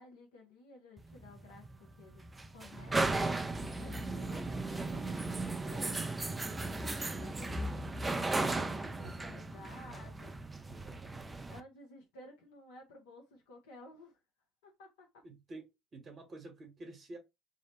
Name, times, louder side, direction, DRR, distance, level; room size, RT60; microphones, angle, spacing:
voice 1, 0.0-1.7 2.0-2.2 2.5-3.4 3.8-6.1 6.5-10.3 11.5-14.2 14.6-15.1, left 2 dB, 80° left, 0.6 m, -55 dB
sound 1, 1.0-11.6, right 2 dB, 20° right, 0.4 m, -36 dB
voice 2, 9.0-9.5 9.8-10.0 10.7-11.5 15.2-17.2, right 2 dB, 40° right, 1.1 m, -51 dB
2.8 x 2.0 x 2.9 m
hypercardioid pair, 65°, 0 cm